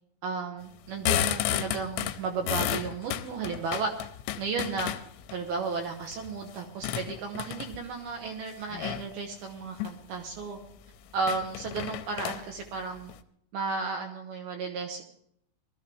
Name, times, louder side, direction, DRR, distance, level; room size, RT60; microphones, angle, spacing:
voice 1, 0.2-4.1 4.4-4.9 5.3-10.6 11.1-13.1 13.5-15.0, right 4 dB, 70° right, 3 dB, 2.6 m, -34 dB
sound 1, 0.8-5.4 5.9-7.9 8.7-9.1 9.6-10.0 10.4-10.5 10.7-10.8 11.2-13.2, left 12 dB, 90° left, 3.3 m, -32 dB
20.0 x 13.5 x 3.1 m, 0.68 s
omnidirectional pair, 5.6 m